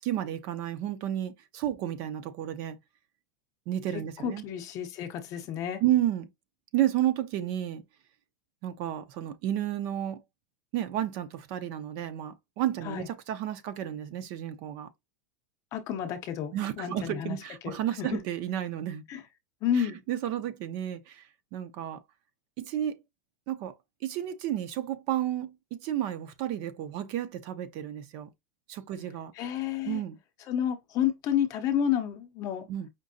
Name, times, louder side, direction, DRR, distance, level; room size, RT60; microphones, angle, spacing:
voice 1, 0.0-2.8 3.7-4.4 5.8-6.3 6.7-7.8 8.6-10.2 10.7-14.9 16.5-19.0 19.7-21.2 21.5-22.0 22.6-23.0 23.5-23.7 24.0-28.3 28.7-29.3 29.8-30.2 32.7-32.9, right 12 dB, 45° right, 0.6 m, -31 dB
voice 2, 4.2-5.8 12.8-13.1 15.7-17.4 17.6-18.2 19.1-19.2 19.6-20.0 29.4-30.0 30.5-32.7, left 9 dB, 35° left, 0.7 m, -30 dB
5.1 x 2.7 x 2.7 m
supercardioid pair, 160°, 10 cm